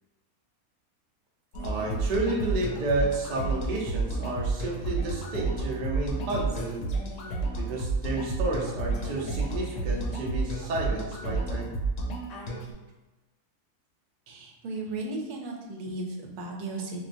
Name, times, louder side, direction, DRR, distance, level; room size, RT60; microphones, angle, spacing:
sound 1, 1.5-12.7, right 3 dB, 65° left, 0.9 m, -31 dB
voice 1, 1.6-6.8 7.6-11.8, right 2 dB, 70° right, -3 dB, 0.4 m, -31 dB
voice 2, 14.3-17.1, right 2 dB, 85° right, 0 dB, 1.1 m, -35 dB
3.8 x 2.1 x 2.5 m, 1.1 s
omnidirectional pair, 1.6 m